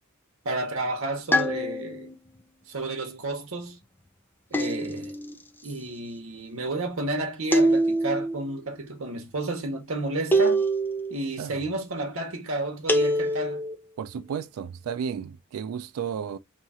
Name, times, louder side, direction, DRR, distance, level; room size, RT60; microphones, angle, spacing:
voice 1, 0.4-2.1 2.7-3.8 4.5-5.1 5.6-10.6 11.1-13.6, right 2 dB, 65° right, 0.9 m, -31 dB
sound 1, 1.3-2.1 4.5-5.3 7.5-8.3 10.3-11.1 12.9-13.7, right 1 dB, 10° left, 0.4 m, -24 dB
voice 2, 14.0-16.4, right 7 dB, 85° right, 0.3 m, -33 dB
2.9 x 2.4 x 4.1 m
head